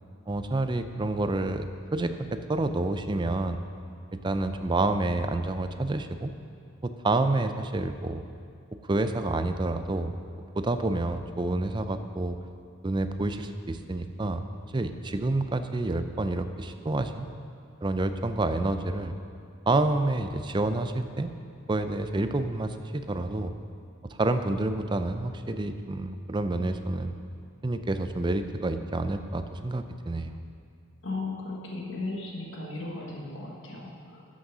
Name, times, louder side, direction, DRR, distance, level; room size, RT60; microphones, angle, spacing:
voice 1, 0.3-1.7 1.9-3.6 4.2-6.3 6.8-8.2 8.8-10.1 10.6-12.4 12.8-14.4 14.7-17.3 17.8-19.1 19.7-21.3 21.7-23.5 24.1-27.1 27.6-30.4, right 2 dB, 20° right, 9 dB, 0.4 m, -28 dB
voice 2, 31.0-34.2, left 2 dB, 60° left, -2 dB, 1.3 m, -36 dB
12.5 x 6.3 x 6.1 m, 2.4 s
head